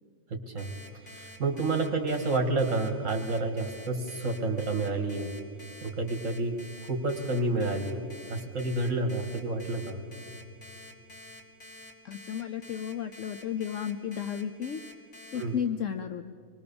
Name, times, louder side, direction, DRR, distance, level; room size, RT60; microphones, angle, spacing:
voice 1, 0.3-5.3 5.8-6.6 6.8-10.0 15.3-15.5, right 2 dB, 65° right, 3 dB, 2.1 m, -30 dB
Alarm, 0.6-15.4, left 1 dB, 85° left, 3.0 m, -48 dB
voice 2, 12.0-14.8 15.3-16.2, left 8 dB, 70° left, 8 dB, 1.1 m, -33 dB
27.0 x 21.0 x 7.0 m, 2.4 s
omnidirectional pair, 1.4 m